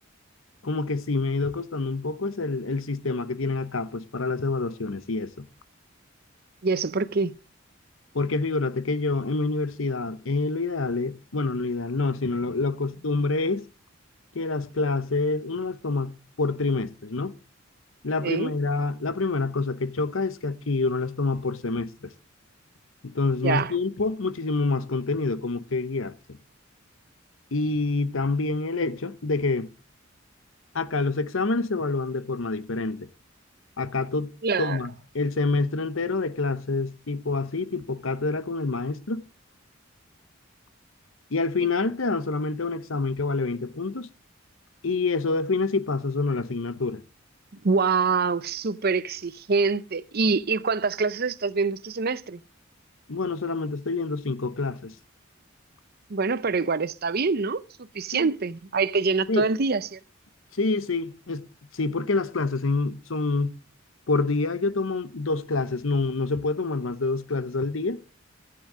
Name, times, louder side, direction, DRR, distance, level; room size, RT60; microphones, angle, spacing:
voice 1, 0.6-5.5 8.1-13.7 14.3-17.3 18.0-22.1 23.0-26.4 27.5-29.7 30.7-33.1 33.8-34.3 34.6-39.2 41.3-44.1 44.8-47.0 53.1-54.9 58.1-58.3 59.3-59.5 60.5-61.4 61.7-63.6 64.1-68.0, left 3 dB, 80° left, 0.9 m, -27 dB
voice 2, 6.6-7.3 18.2-18.5 23.4-23.7 34.4-34.8 47.6-52.4 56.1-57.6 57.9-60.0, right 4 dB, 50° right, 0.7 m, -25 dB
14.5 x 7.8 x 6.1 m
head